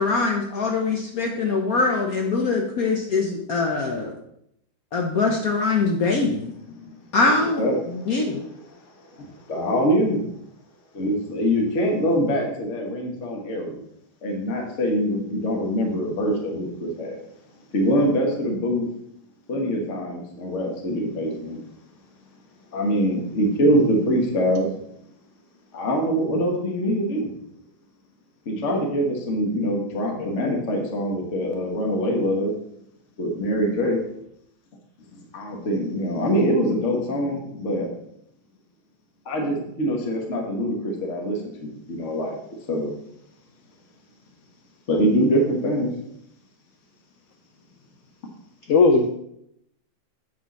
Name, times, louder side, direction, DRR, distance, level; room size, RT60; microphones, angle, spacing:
voice 1, 0.0-4.1 4.9-6.5 7.1-7.6 8.1-8.4, left 3 dB, 60° left, 1 dB, 1.1 m, -23 dB
voice 2, 7.6-8.8 9.1-10.2 10.9-13.8 14.2-17.2 17.7-18.8 19.5-21.6 22.7-24.7 25.7-27.3 28.4-32.5 33.2-34.0 35.1-37.9 39.2-42.4 42.7-42.9 44.9-45.9, equal, 40° left, 1 dB, 1.5 m, -24 dB
voice 3, 30.2-30.6 48.7-49.1, left 3 dB, 80° left, 6 dB, 0.7 m, -19 dB
7.7 x 6.1 x 4.1 m, 0.75 s
omnidirectional pair, 2.1 m